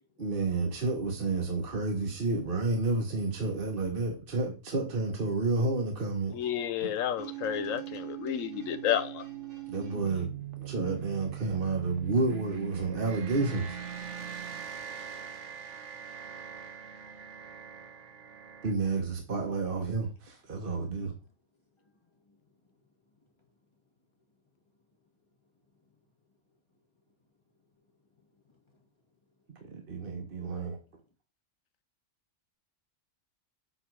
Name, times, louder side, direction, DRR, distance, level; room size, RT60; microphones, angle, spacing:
voice 1, 0.2-6.4 6.8-6.9 9.7-13.8 18.6-21.1 29.5-30.8, right 3 dB, 45° right, 1.4 m, -30 dB
voice 2, 6.3-9.2, left 10 dB, 85° left, 1.1 m, -31 dB
sound 1, 7.2-18.7, right 9 dB, 70° right, 1.3 m, -41 dB
voice 3, 15.0-18.4 21.0-21.3 21.8-23.8 24.3-24.4 25.4-26.0 26.3-26.4 26.7-26.8 27.6-28.9 29.8-29.9, left 3 dB, 20° left, 1.6 m, -71 dB
8.1 x 3.5 x 4.7 m
omnidirectional pair, 1.3 m